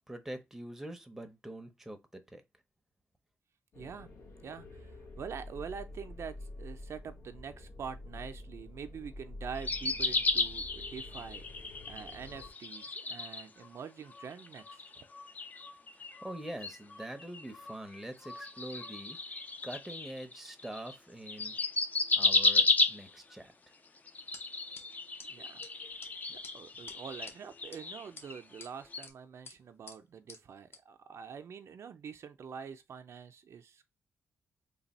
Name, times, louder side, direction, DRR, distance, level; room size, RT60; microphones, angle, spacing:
voice 1, 0.1-2.4 16.2-19.2 19.6-21.6 22.2-23.5, right 1 dB, 5° right, 0.6 m, -44 dB
sound 1, 3.7-12.5, left 2 dB, 65° left, 1.3 m, -48 dB
voice 2, 3.8-4.1 4.4-14.8 25.3-25.6 26.3-33.9, right 6 dB, 65° right, 0.4 m, -45 dB
sound 2, 9.5-13.8 14.1-21.0 21.3-23.3 24.0-28.6 28.9-29.1, left 3 dB, 30° left, 0.5 m, -34 dB
sound 3, 24.3-24.4 24.8-24.9 25.2-25.3 25.6-25.7 26.0-26.1 26.4-26.5 26.9-27.3 27.7-27.8 28.2-28.7 29.0-29.1 29.5-29.6 29.9-30.0 30.3-30.4 30.7-30.8, left 3 dB, 50° left, 0.9 m, -48 dB
3.3 x 2.2 x 4.1 m
wide cardioid pair, 110°, 5 cm